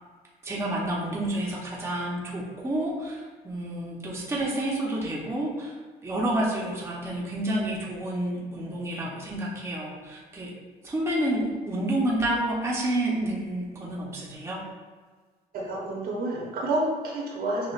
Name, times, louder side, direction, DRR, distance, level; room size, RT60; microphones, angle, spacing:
voice 1, 0.4-5.7 6.0-10.5 10.8-14.6, right 1 dB, 15° right, -5 dB, 0.9 m, -29 dB
voice 2, 15.5-17.7, right 2 dB, 65° right, -3 dB, 1.1 m, -29 dB
6.2 x 2.5 x 2.5 m, 1.4 s
cardioid pair, 110°, 17 cm